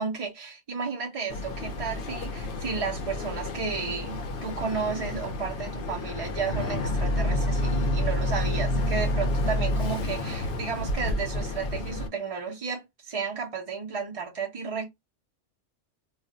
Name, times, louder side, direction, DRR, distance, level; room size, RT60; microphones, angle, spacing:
voice 1, 0.0-14.9, right 5 dB, 40° right, 0.6 m, -33 dB
Boat Water vehicle, 1.3-12.1, left 1 dB, 55° left, 0.7 m, -29 dB
2.4 x 2.1 x 3.6 m
omnidirectional pair, 1.3 m